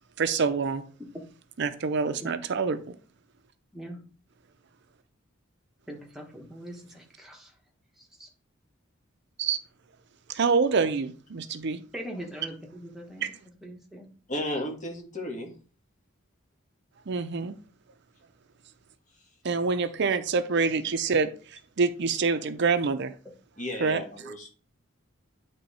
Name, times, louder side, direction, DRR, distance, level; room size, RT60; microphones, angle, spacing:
voice 1, 0.2-0.8 1.6-3.0 9.4-9.6 10.3-11.8 13.2-13.3 17.1-17.6 19.4-23.1 23.8-24.3, right 4 dB, 60° right, 0.5 m, -26 dB
voice 2, 5.9-7.5 8.0-8.3 11.9-13.3 13.6-14.1, right 1 dB, ahead, 1.3 m, -41 dB
voice 3, 14.3-15.5 23.6-24.5, left 1 dB, 40° left, 1.6 m, -33 dB
9.5 x 3.4 x 4.1 m
head